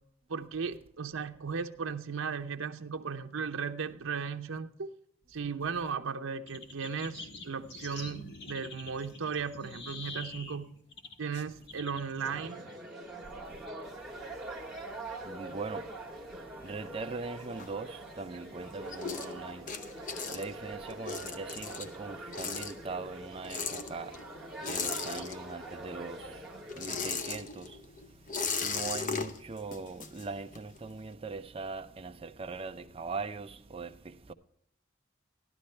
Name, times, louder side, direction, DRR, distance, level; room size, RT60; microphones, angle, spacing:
voice 1, 0.3-4.9 5.3-10.8 11.2-12.6, right 5 dB, 80° right, 0.7 m, -36 dB
sound 1, 6.5-13.4, left 3 dB, 60° left, 1.5 m, -46 dB
sound 2, 12.2-26.9, right 2 dB, ahead, 1.8 m, -44 dB
voice 2, 15.2-15.9 16.6-19.6 20.3-24.1 24.7-26.4 26.8-27.8 28.6-34.3, right 4 dB, 30° right, 0.6 m, -40 dB
sound 3, 16.6-18.3 18.6-25.8 26.1-30.8, left 5 dB, 40° left, 0.8 m, -38 dB
13.0 x 11.5 x 3.2 m
head